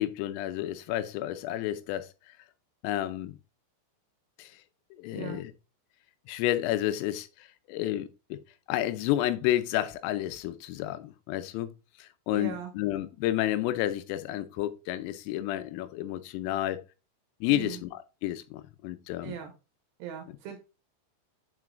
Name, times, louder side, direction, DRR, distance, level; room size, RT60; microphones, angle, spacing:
voice 1, 0.0-2.1 2.8-3.4 4.4-4.6 5.0-5.5 6.3-8.4 8.7-11.7 12.0-16.8 17.4-19.3, left 13 dB, 90° left, 3.4 m, -31 dB
voice 2, 12.3-12.7 17.4-17.8 19.2-19.5 20.0-20.6, right 8 dB, 75° right, 2.8 m, -39 dB
9.4 x 4.7 x 2.5 m
omnidirectional pair, 5.8 m